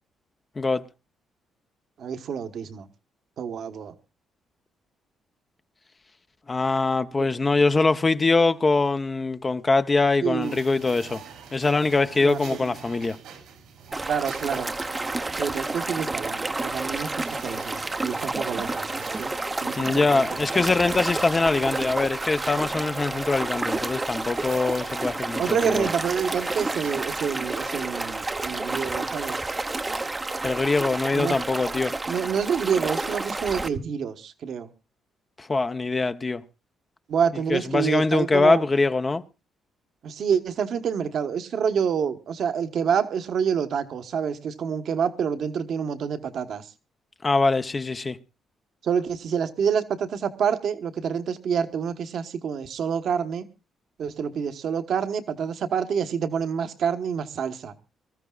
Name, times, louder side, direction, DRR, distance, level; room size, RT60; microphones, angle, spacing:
voice 1, 2.0-2.9 3.4-3.9 10.2-10.7 12.2-12.7 14.1-14.7 15.4-19.3 19.6-20.2 20.5-20.6 25.4-29.4 31.1-31.4 32.1-34.7 37.1-38.6 40.0-46.7 48.8-53.5 54.0-57.7, right 7 dB, 65° right, 1.2 m, -27 dB
voice 2, 6.5-11.2 11.5-13.2 19.7-25.9 30.4-31.9 35.4-36.4 37.5-39.2 47.2-48.2, left 3 dB, 25° left, 0.7 m, -23 dB
sound 1, 10.4-27.0, right 7 dB, 85° right, 3.1 m, -46 dB
sound 2, 13.9-33.7, right 2 dB, 20° right, 0.7 m, -30 dB
24.0 x 13.5 x 2.4 m
cardioid pair, 90°, 0 cm